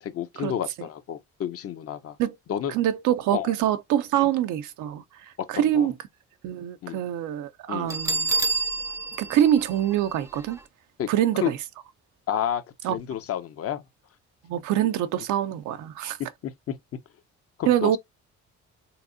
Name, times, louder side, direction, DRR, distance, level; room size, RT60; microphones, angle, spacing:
voice 1, 0.0-2.2 2.5-2.7 3.3-3.5 4.2-4.3 5.4-5.5 5.7-5.9 6.8-7.0 7.7-8.0 11.0-11.1 11.3-11.5 12.3-13.8 16.4-16.7 17.6-18.0, left 10 dB, 50° left, 0.6 m, -30 dB
voice 2, 2.7-5.9 6.4-8.3 9.2-10.6 11.1-11.6 12.8-12.9 14.4-16.2 17.7-18.0, right 11 dB, 80° right, 0.5 m, -25 dB
Bell, 7.9-10.6, right 3 dB, 10° right, 0.5 m, -28 dB
3.5 x 2.9 x 2.5 m
cardioid pair, 90°, 30 cm